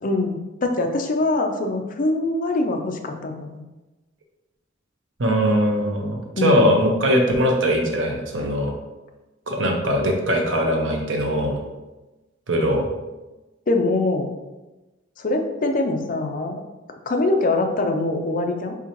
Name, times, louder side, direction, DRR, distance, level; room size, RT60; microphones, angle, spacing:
voice 1, 0.0-3.6 6.4-6.7 13.7-14.4 15.2-16.6 17.1-18.8, left 2 dB, 45° left, 4 dB, 0.5 m, -23 dB
voice 2, 5.2-8.7 9.5-11.6 12.5-12.9, equal, 80° right, 2 dB, 0.8 m, -21 dB
4.7 x 3.8 x 2.9 m, 1.1 s
head